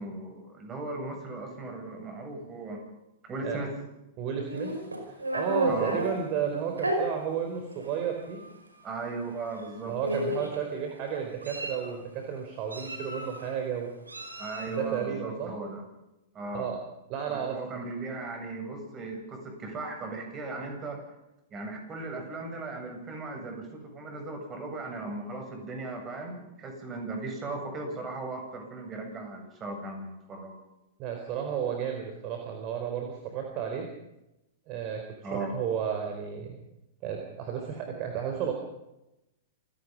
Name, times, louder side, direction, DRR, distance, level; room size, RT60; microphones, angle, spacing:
voice 1, 0.0-2.8 3.2-3.7 5.7-6.0 8.8-10.0 14.4-15.8 16.3-16.7 17.3-21.0 21.5-30.5 35.2-35.5, right 2 dB, 25° right, 3 dB, 8.0 m, -37 dB
voice 2, 4.2-4.8 5.0-8.4 9.8-13.9 14.7-15.6 16.5-16.8 17.1-17.6 31.0-33.9 34.7-36.6 37.0-38.5, right 8 dB, 40° right, 3 dB, 4.3 m, -32 dB
Meow, 4.5-6.1 6.8-7.0 7.8-7.9 8.3-8.5 9.5-9.7 10.0-10.6 11.2-11.9 12.7-13.4 14.1-14.8, right 1 dB, 90° right, 5.3 m, -32 dB
27.5 x 17.5 x 5.5 m, 0.91 s
figure-of-eight pair, 105°, 0 cm